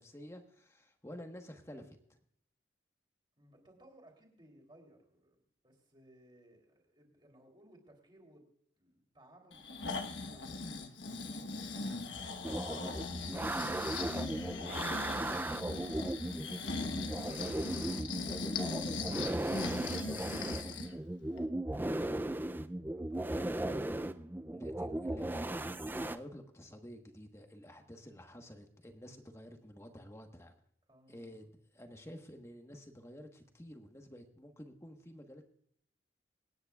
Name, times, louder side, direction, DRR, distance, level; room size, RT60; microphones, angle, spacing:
voice 1, 0.0-2.0 21.7-22.0 23.6-23.8 24.5-30.5 31.1-35.5, equal, 15° left, 5 dB, 1.2 m, -50 dB
voice 2, 3.4-8.4 8.8-13.8 22.9-23.7 30.9-31.4, right 1 dB, 25° right, 2 dB, 3.3 m, -61 dB
Breathing, 9.5-20.9 21.4-21.5, left 3 dB, 85° left, 1.2 m, -40 dB
sound 1, 12.4-26.2, right 1 dB, 10° right, 0.4 m, -37 dB
26.5 x 9.8 x 2.4 m, 0.67 s
head